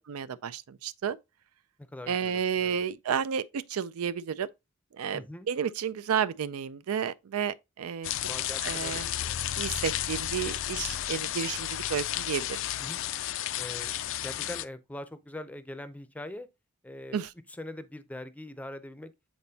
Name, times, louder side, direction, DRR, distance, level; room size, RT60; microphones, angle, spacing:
voice 1, 0.1-1.2 2.1-4.5 4.9-8.1 8.6-9.1 9.6-12.6 17.1-17.3, right 7 dB, 90° right, 0.4 m, -31 dB
voice 2, 1.9-2.8 5.1-5.5 8.3-9.4 12.8-13.0 13.6-14.0 14.2-16.5 16.8-17.2 17.5-19.1, left 1 dB, 5° left, 0.5 m, -42 dB
sound 1, 8.0-14.6, left 12 dB, 65° left, 0.4 m, -32 dB
8.7 x 4.1 x 2.8 m
head